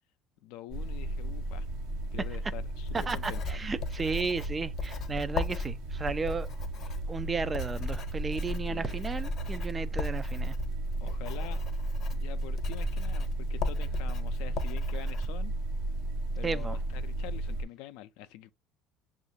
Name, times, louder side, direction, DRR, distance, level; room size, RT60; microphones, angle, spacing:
voice 1, 0.4-1.7 2.1-3.7 8.7-9.0 11.0-11.6 12.1-15.5 16.3-18.5, left 14 dB, 70° left, 0.4 m, -45 dB
sound 1, 0.7-17.6, right 1 dB, 75° right, 1.0 m, -34 dB
Writing, 2.8-15.3, left 5 dB, 50° left, 0.7 m, -39 dB
voice 2, 2.9-6.5 7.1-10.6 16.4-16.8, right 4 dB, 25° right, 0.3 m, -34 dB
6.1 x 2.4 x 2.7 m
hypercardioid pair, 80°, 0 cm